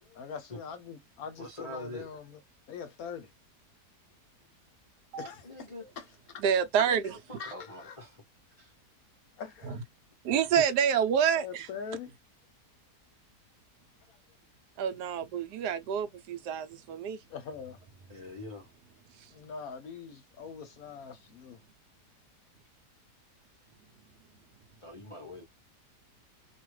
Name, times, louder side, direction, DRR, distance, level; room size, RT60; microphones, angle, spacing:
voice 1, 0.0-2.4 2.7-3.3 5.2-6.4 7.4-8.1 9.4-9.8 10.3-10.4 11.3-12.1 14.1-14.4 17.3-17.8 19.3-21.6, left 6 dB, 70° left, 1.0 m, -43 dB
voice 2, 1.4-2.1 5.5-5.8 7.3-8.1 8.6-8.7 18.1-18.7 24.8-25.4, left 1 dB, 35° left, 0.5 m, -43 dB
voice 3, 6.4-7.4 9.6-9.8 10.2-11.7 14.8-17.2 19.2-19.3, right 8 dB, 80° right, 1.2 m, -28 dB
2.8 x 2.4 x 3.1 m
omnidirectional pair, 1.8 m